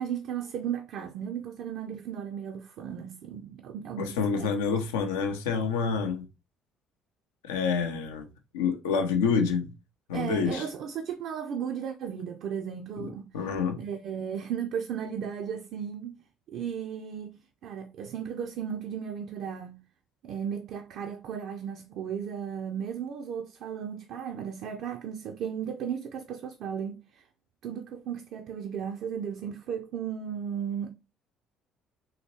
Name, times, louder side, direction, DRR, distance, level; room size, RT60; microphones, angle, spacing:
voice 1, 0.0-4.5 10.1-13.3 13.8-16.2 16.5-17.4 17.6-19.8 20.2-27.2 27.6-30.9, right 8 dB, 60° right, 0.3 m, -35 dB
voice 2, 4.0-6.2 7.4-8.3 8.5-9.7 10.1-10.6 13.0-13.8, left 5 dB, 75° left, 0.5 m, -28 dB
2.8 x 2.8 x 2.9 m
figure-of-eight pair, 50°, 0 cm